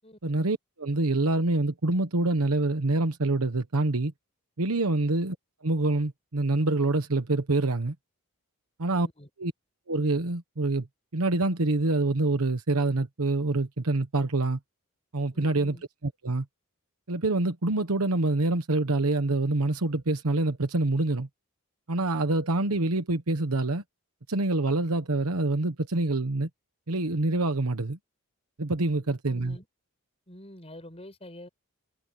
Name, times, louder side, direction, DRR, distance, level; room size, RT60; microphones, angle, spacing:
voice 1, 0.2-4.1 4.6-5.4 5.6-7.9 8.8-9.1 9.4-9.5 9.9-10.9 11.1-14.6 15.1-15.8 16.2-16.4 17.1-21.3 21.9-23.8 24.3-26.5 26.9-28.0 28.6-29.6, right 2 dB, 80° right, 1.2 m, -26 dB
voice 2, 9.0-9.3 15.3-15.8 28.9-29.7 30.3-31.5, left 1 dB, 25° left, 7.9 m, -47 dB
head